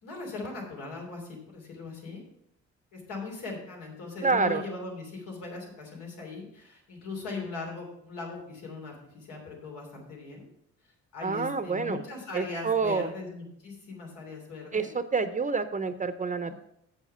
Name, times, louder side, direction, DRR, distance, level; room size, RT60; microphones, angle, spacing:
voice 1, 0.0-2.2 2.9-10.5 11.1-14.9 16.4-16.6, left 3 dB, 85° left, 0 dB, 3.1 m, -39 dB
voice 2, 4.2-4.6 11.2-12.0 12.3-13.1 14.7-16.6, right 4 dB, 25° right, 11 dB, 0.6 m, -28 dB
7.7 x 7.3 x 5.5 m, 0.77 s
cardioid pair, 90°, 30 cm